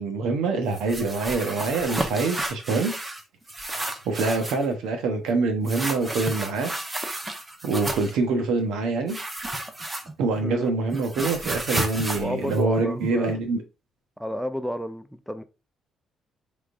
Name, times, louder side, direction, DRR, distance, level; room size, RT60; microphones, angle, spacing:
voice 1, 0.0-3.0 3.7-6.7 7.6-9.2 10.2-13.6, right 3 dB, 90° right, 1.0 m, -25 dB
sound 1, 0.7-3.2 3.5-4.7 5.7-8.2 9.1-10.4 10.7-13.3, right 1 dB, 20° right, 0.9 m, -32 dB
voice 2, 10.4-10.7 12.2-13.4 14.2-15.4, equal, ahead, 0.5 m, -31 dB
4.4 x 3.6 x 2.5 m
cardioid pair, 90°, 0 cm